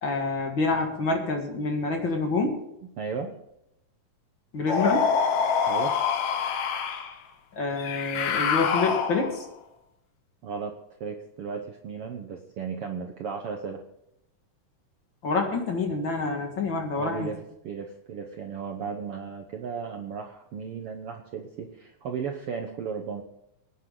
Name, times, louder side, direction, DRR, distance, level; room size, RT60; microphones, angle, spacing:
voice 1, 0.0-2.6 4.5-5.1 7.5-9.5 15.2-17.4, left 3 dB, 45° left, 3 dB, 2.1 m, -27 dB
voice 2, 3.0-3.4 5.7-6.0 10.4-13.8 17.0-17.4 17.6-23.2, right 6 dB, 65° right, 3 dB, 1.4 m, -35 dB
sound 1, 4.7-7.1 7.8-9.5, left 6 dB, 65° left, 2.2 m, -26 dB
23.0 x 10.0 x 3.9 m, 0.81 s
omnidirectional pair, 3.8 m